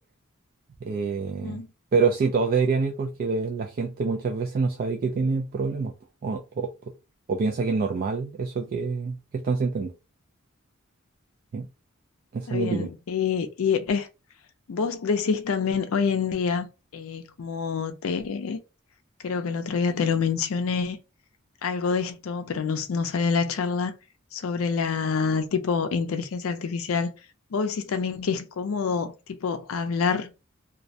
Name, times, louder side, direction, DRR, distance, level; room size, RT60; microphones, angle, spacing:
voice 1, 0.8-1.6 1.9-5.9 6.2-6.7 7.3-9.9 11.5-11.7 12.3-12.9, right 4 dB, 45° right, 0.3 m, -26 dB
voice 2, 12.5-14.1 14.7-16.7 16.9-18.6 19.2-21.0 21.6-23.9 24.3-27.1 27.5-29.1 29.4-30.3, left 5 dB, 80° left, 0.4 m, -26 dB
2.3 x 2.0 x 2.6 m
head